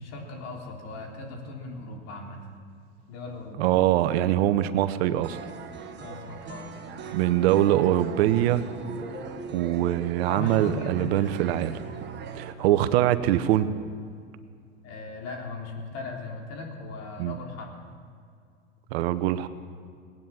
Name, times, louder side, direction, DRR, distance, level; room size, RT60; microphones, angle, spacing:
voice 1, 0.0-2.4 3.1-3.8 6.0-6.7 10.3-11.4 12.6-12.8 14.8-17.7, left 3 dB, 50° left, 1 dB, 3.4 m, -38 dB
voice 2, 3.6-5.4 7.1-8.6 9.5-11.8 12.3-13.7 17.2-17.4 18.9-19.5, right 13 dB, 60° right, 13 dB, 0.8 m, -23 dB
sound 1, 5.2-12.5, right 6 dB, 30° right, 1.3 m, -41 dB
sound 2, 8.8-11.7, right 1 dB, 5° right, 4.7 m, -43 dB
19.5 x 9.3 x 7.2 m, 2.2 s
hypercardioid pair, 110°, 35 cm